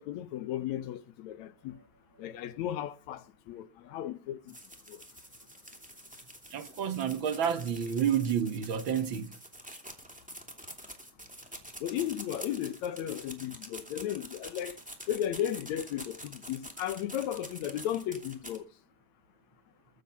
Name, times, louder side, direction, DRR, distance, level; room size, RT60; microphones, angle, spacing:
voice 1, 0.0-1.8 2.2-4.6 4.9-5.0 11.8-14.8 15.1-18.6, left 11 dB, 70° left, 2.0 m, -35 dB
sound 1, 4.5-18.6, right 1 dB, 5° right, 2.3 m, -47 dB
voice 2, 6.5-9.3, right 8 dB, 60° right, 1.3 m, -29 dB
22.5 x 8.2 x 5.6 m
omnidirectional pair, 3.6 m